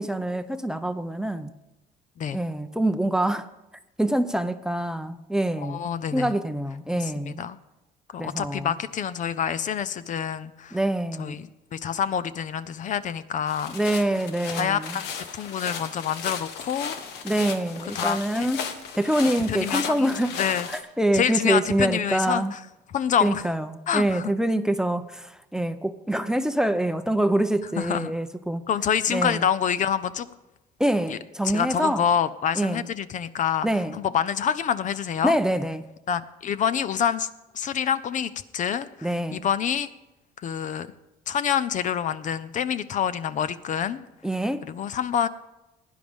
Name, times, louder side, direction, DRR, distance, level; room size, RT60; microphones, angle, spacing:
voice 1, 0.0-1.5 2.3-3.5 4.0-5.9 6.1-7.4 8.2-8.7 10.7-11.4 13.7-15.0 17.2-20.4 20.7-22.5 23.2-28.6 29.1-29.5 30.8-32.1 32.6-32.8 33.6-34.0 35.2-35.9 39.0-39.4 44.2-44.7, right 1 dB, 5° right, 0.6 m, -25 dB
voice 2, 5.6-6.3 7.0-7.1 7.4-7.6 8.1-10.8 11.2-13.8 14.6-17.0 17.9-18.6 19.5-20.7 21.1-22.6 22.9-23.4 23.9-24.3 27.8-28.1 28.7-30.3 31.1-31.2 31.4-33.7 33.9-35.4 36.1-37.3 37.5-39.9 40.4-40.9 41.3-44.0 44.7-45.3, left 8 dB, 50° left, 0.6 m, -27 dB
sound 1, 13.5-20.8, left 6 dB, 85° left, 1.3 m, -35 dB
16.0 x 10.5 x 3.6 m
cardioid pair, 110°, 17 cm